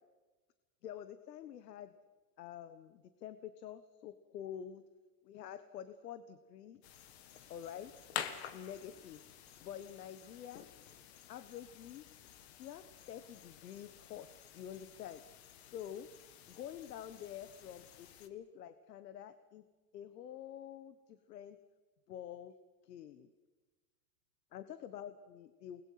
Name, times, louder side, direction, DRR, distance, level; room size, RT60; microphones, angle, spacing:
voice 1, 0.8-1.9 2.4-4.9 5.2-6.8 7.5-7.9 8.5-9.2 9.6-10.6 11.3-12.1 12.6-14.3 14.5-15.2 15.7-16.1 16.5-19.6 19.9-21.6 22.1-22.5 22.8-23.3 24.5-25.8, left 10 dB, 85° left, 12 dB, 1.5 m, -48 dB
sound 1, 6.8-18.3, left 9 dB, 40° left, 1.6 m, -50 dB
29.0 x 20.5 x 5.9 m, 1.3 s
supercardioid pair, 175°, 47 cm